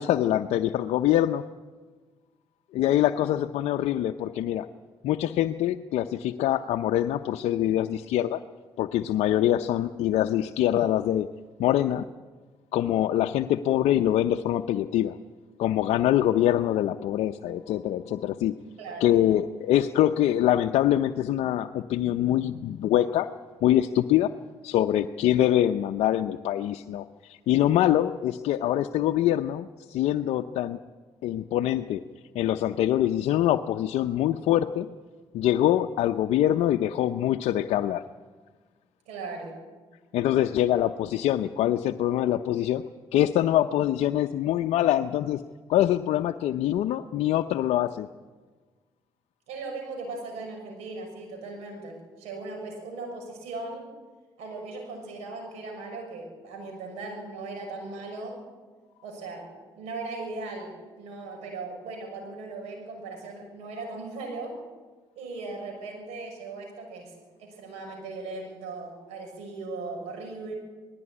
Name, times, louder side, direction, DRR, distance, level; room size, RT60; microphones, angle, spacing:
voice 1, 0.0-1.5 2.7-4.7 5.0-8.4 8.8-11.3 11.6-12.0 12.7-15.2 15.6-18.6 19.0-23.3 23.6-24.3 24.6-30.8 31.2-32.0 32.3-34.9 35.3-38.0 40.1-42.8 43.1-45.4 45.7-48.1, left 12 dB, 80° left, 7 dB, 0.6 m, -24 dB
voice 2, 18.8-19.1 39.1-39.5 49.5-53.9 54.4-58.4 59.0-59.5 59.7-64.6 65.1-67.1 67.4-70.6, right 3 dB, 85° right, 2 dB, 6.5 m, -38 dB
19.5 x 15.0 x 9.8 m, 1.4 s
supercardioid pair, 65°, 11 cm